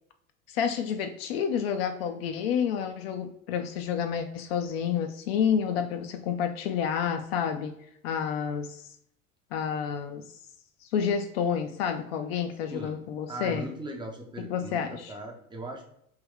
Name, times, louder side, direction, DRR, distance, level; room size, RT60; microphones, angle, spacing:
voice 1, 0.5-7.7 8.0-8.8 9.5-10.2 10.9-13.7 14.4-15.1, left 7 dB, 50° left, 0.4 m, -29 dB
voice 2, 13.3-15.8, right 2 dB, 10° right, 0.5 m, -39 dB
3.2 x 2.9 x 3.3 m
figure-of-eight pair, 70°, 41 cm